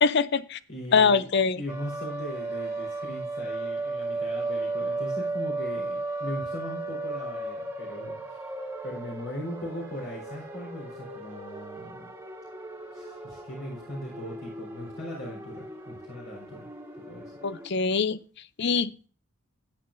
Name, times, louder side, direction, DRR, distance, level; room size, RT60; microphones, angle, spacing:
voice 1, 0.0-0.6 0.9-1.6 17.4-18.2 18.6-19.1, left 5 dB, 50° left, 16 dB, 0.5 m, -23 dB
voice 2, 0.7-1.3 1.6-12.1 12.9-17.3, equal, 65° left, -2 dB, 4.1 m, -39 dB
sound 1, 1.7-17.7, right 2 dB, 10° right, 1.5 m, -35 dB
13.5 x 9.6 x 2.6 m, 0.38 s
head